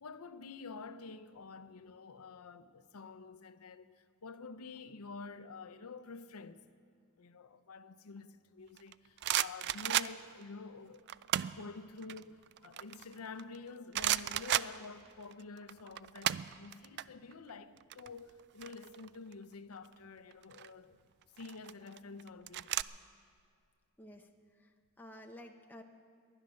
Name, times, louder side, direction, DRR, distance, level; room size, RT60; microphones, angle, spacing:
voice 1, 0.0-6.7 7.2-11.1 11.5-21.0 21.4-22.8, left 4 dB, 85° left, 0.7 m, -49 dB
sound 1, 8.8-10.4 11.1-11.6 12.0-13.6 13.9-15.3 15.6-17.0 17.3-17.5 17.8-19.3 20.3-20.7 21.4-22.8, right 13 dB, 50° right, 0.3 m, -34 dB
voice 2, 24.0-25.8, left 1 dB, 10° left, 0.7 m, -53 dB
22.5 x 9.9 x 6.4 m
head